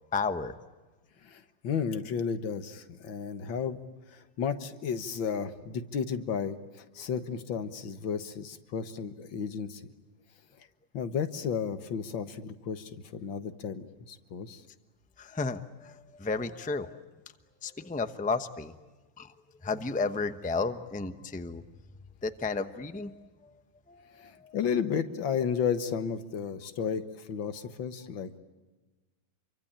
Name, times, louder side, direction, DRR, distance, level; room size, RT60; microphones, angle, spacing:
voice 1, 0.1-0.5 15.2-17.0 17.6-18.7 19.2-19.3 19.6-21.6 22.2-23.5 23.9-24.5, left 4 dB, 5° left, 9 dB, 0.6 m, -33 dB
voice 2, 1.2-3.8 4.1-9.8 10.9-14.6 24.2-28.4, left 7 dB, 85° left, 10 dB, 2.1 m, -33 dB
27.5 x 24.0 x 8.8 m, 1.2 s
omnidirectional pair, 2.0 m